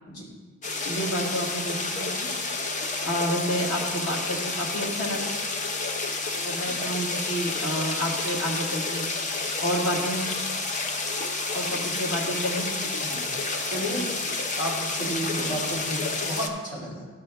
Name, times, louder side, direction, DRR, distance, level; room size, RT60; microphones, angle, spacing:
sound 1, 0.6-16.5, left 3 dB, 35° left, 0.6 m, -30 dB
voice 1, 0.8-2.3 3.0-5.3 6.4-9.1 9.6-10.3 11.5-12.7, equal, 50° left, -2 dB, 1.6 m, -29 dB
voice 2, 13.7-14.1 14.5-17.1, equal, 75° left, -5 dB, 3.0 m, -32 dB
13.0 x 5.5 x 3.4 m, 1.3 s
head